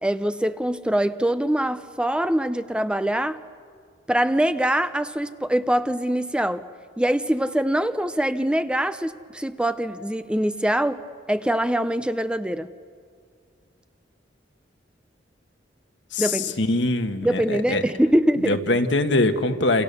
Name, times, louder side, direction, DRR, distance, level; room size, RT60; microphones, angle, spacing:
voice 1, 0.0-3.4 4.1-6.7 7.0-11.0 11.3-12.7 16.2-16.6 17.2-18.6, right 1 dB, 5° right, 0.6 m, -23 dB
voice 2, 16.1-17.8 18.4-19.8, left 2 dB, 75° left, 1.6 m, -23 dB
28.5 x 28.5 x 6.9 m
head